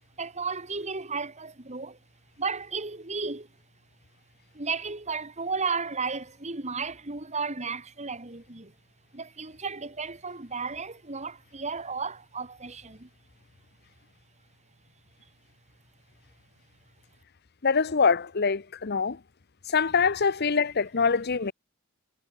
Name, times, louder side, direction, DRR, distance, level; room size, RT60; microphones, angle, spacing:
voice 1, 0.2-2.0 2.4-3.5 4.5-8.7 9.1-13.1, right 4 dB, 35° right, 2.6 m, -34 dB
voice 2, 17.6-19.2 19.7-21.5, left 5 dB, 50° left, 0.8 m, -24 dB
head